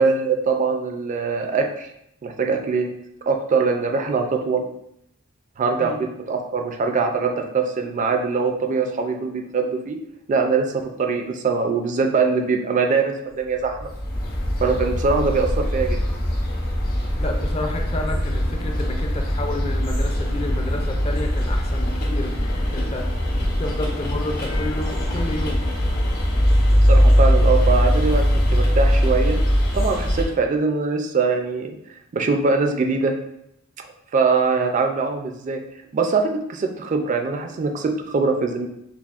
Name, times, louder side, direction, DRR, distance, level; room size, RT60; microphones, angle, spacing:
voice 1, 0.0-1.9 2.2-2.9 3.3-4.6 5.6-10.0 10.3-13.9 14.6-16.0 26.7-29.4 29.7-31.7 32.1-33.1 34.1-35.6 35.9-38.7, right 4 dB, 40° right, 5 dB, 0.3 m, -22 dB
sound 1, 13.6-30.3, equal, 45° left, 0.8 m, -21 dB
voice 2, 17.1-23.1 23.6-25.7, left 2 dB, 30° left, 3 dB, 0.4 m, -31 dB
5.8 x 2.0 x 2.4 m, 0.77 s
head